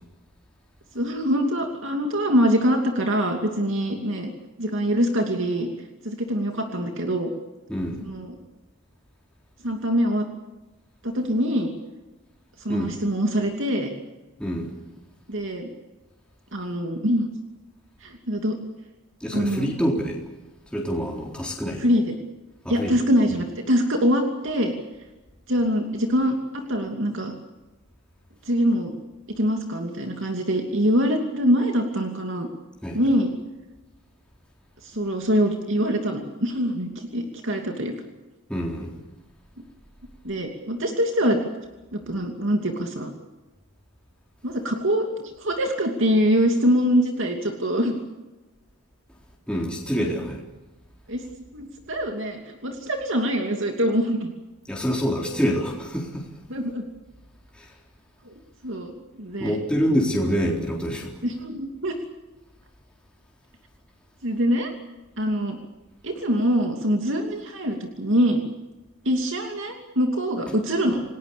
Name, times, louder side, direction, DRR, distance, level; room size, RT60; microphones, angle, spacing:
voice 1, 0.9-4.3 4.6-5.7 6.0-7.3 8.0-8.4 9.6-10.3 11.0-11.7 12.6-13.9 15.3-15.7 16.5-17.3 18.0-18.6 19.3-19.7 21.8-22.1 22.7-24.7 25.5-27.3 28.4-28.9 29.4-32.5 32.9-33.3 34.8-37.9 40.2-41.4 41.9-43.1 44.4-48.0 51.1-51.2 51.5-54.3 56.5-56.8 58.2-58.9 59.2-59.6 61.2-61.9 64.2-64.7 65.2-65.6 66.0-68.4 69.0-71.0, equal, 60° right, 3 dB, 2.7 m, -24 dB
voice 2, 7.7-8.0 12.7-13.0 14.4-14.7 19.2-20.2 20.7-21.9 22.6-23.0 32.8-33.0 38.5-38.9 49.5-50.4 54.7-56.3 57.6-57.7 59.4-61.1, equal, 5° left, -2 dB, 3.9 m, -26 dB
29.0 x 19.5 x 6.9 m, 1.1 s
head